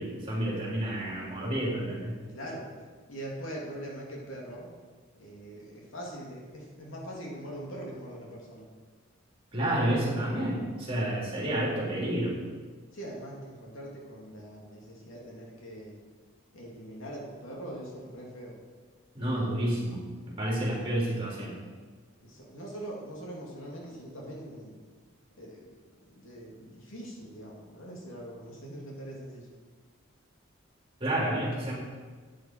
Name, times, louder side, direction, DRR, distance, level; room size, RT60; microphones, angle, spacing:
voice 1, 0.0-2.2 9.5-12.4 19.2-20.0 20.3-21.6 31.0-31.7, right 1 dB, 25° right, -5 dB, 3.6 m, -30 dB
voice 2, 2.3-2.7 3.1-4.7 5.2-8.7 12.9-15.9 16.5-18.6 22.2-24.8 25.4-29.5, right 1 dB, 75° left, -2 dB, 2.7 m, -42 dB
11.5 x 9.3 x 4.6 m, 1.5 s
head